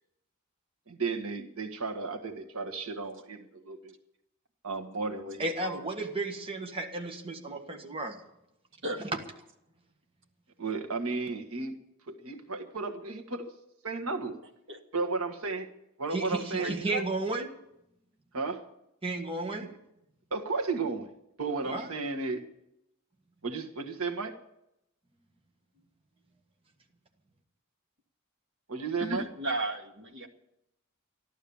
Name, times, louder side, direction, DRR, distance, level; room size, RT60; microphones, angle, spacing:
voice 1, 0.9-3.9 4.6-5.8 10.6-11.7 12.1-13.5 13.8-14.4 14.9-15.7 16.0-16.8 18.3-18.6 19.6-19.7 20.3-21.1 21.4-22.4 23.4-24.3 28.7-29.2, right 4 dB, 90° right, 3 dB, 1.6 m, -34 dB
voice 2, 5.4-8.2 16.1-17.5 19.0-19.7 21.6-21.9, right 2 dB, 25° right, 3 dB, 1.5 m, -33 dB
voice 3, 16.6-17.0 29.0-30.3, right 2 dB, 60° right, 3 dB, 2.0 m, -34 dB
13.5 x 12.0 x 7.1 m, 0.81 s
head